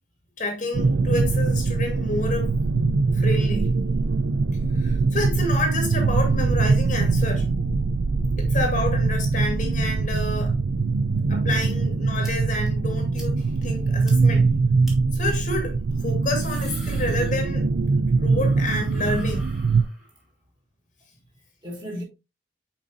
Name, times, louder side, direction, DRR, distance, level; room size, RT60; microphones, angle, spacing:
voice 1, 0.4-2.5 3.1-3.8 4.8-7.5 8.4-10.6 11.3-14.5 15.1-15.8 16.0-17.7 18.0-19.5, left 2 dB, 45° left, 2.1 m, -29 dB
sound 1, 0.7-19.8, right 4 dB, 85° right, 0.5 m, -22 dB
voice 2, 11.0-11.5 17.9-18.0 19.7-20.1 21.3-22.0, equal, 25° right, 3.4 m, -40 dB
sound 2, 12.2-12.3 12.7-12.8 13.2-13.3 13.6-13.7 14.1-14.2 14.8-15.0 16.1-17.8 18.1-20.2, equal, ahead, 2.0 m, -45 dB
6.7 x 5.3 x 2.8 m
head